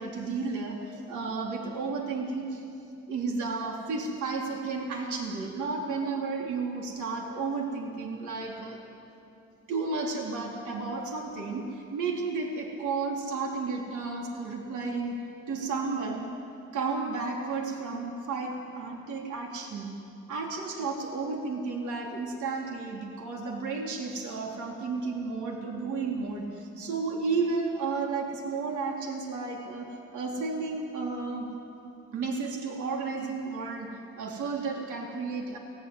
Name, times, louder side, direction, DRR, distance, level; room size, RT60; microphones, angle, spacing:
voice 1, 0.0-2.6 3.1-8.8 9.7-16.3 16.7-19.9 20.3-31.5 32.1-35.6, right 4 dB, 80° right, 0 dB, 4.1 m, -32 dB
29.5 x 20.0 x 9.7 m, 2.6 s
cardioid pair, 90°, 30 cm